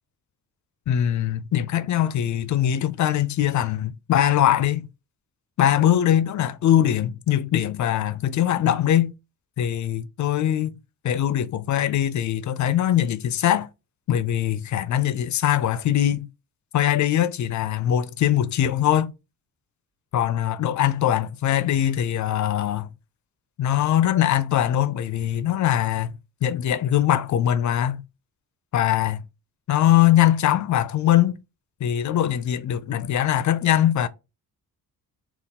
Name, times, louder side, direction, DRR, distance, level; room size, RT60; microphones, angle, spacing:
voice 1, 0.9-4.9 5.6-9.1 9.6-10.8 11.0-13.7 14.1-16.3 16.7-19.1 20.1-22.9 23.6-26.1 26.4-28.0 28.7-29.2 29.7-31.4 31.8-34.1, left 11 dB, 55° left, 0.5 m, -22 dB
3.5 x 2.4 x 4.0 m
wide cardioid pair, 160°, 36 cm